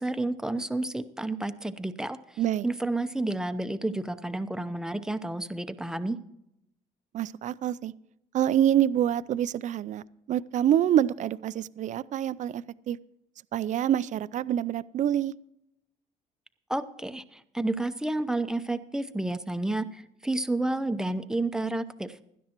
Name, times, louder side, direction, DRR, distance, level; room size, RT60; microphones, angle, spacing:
voice 1, 0.0-6.2 16.7-22.3, right 2 dB, 5° right, 11 dB, 0.7 m, -31 dB
voice 2, 7.1-7.9 8.3-13.0 13.5-15.3, right 11 dB, 45° right, 18 dB, 0.4 m, -26 dB
17.0 x 12.0 x 3.0 m, 0.81 s
cardioid pair, 110°, 17 cm